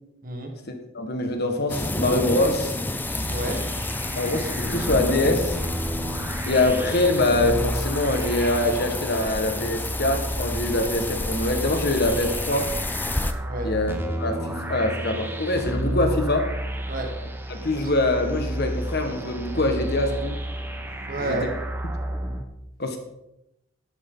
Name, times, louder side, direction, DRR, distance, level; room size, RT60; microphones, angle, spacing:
voice 1, 0.2-0.6 3.2-3.7 13.4-13.7 16.9-17.2 17.7-17.9 21.1-21.5, right 2 dB, 40° right, 3 dB, 1.5 m, -31 dB
voice 2, 0.9-2.7 4.1-5.6 6.5-12.7 13.6-16.5 17.6-20.4 21.2-21.4 22.8-23.0, left 2 dB, 45° left, 5 dB, 1.6 m, -24 dB
sound 1, 1.7-13.3, left 2 dB, 10° left, 0.4 m, -30 dB
sound 2, 3.0-22.4, right 1 dB, 10° right, 0.9 m, -32 dB
11.5 x 11.0 x 3.9 m, 0.87 s
head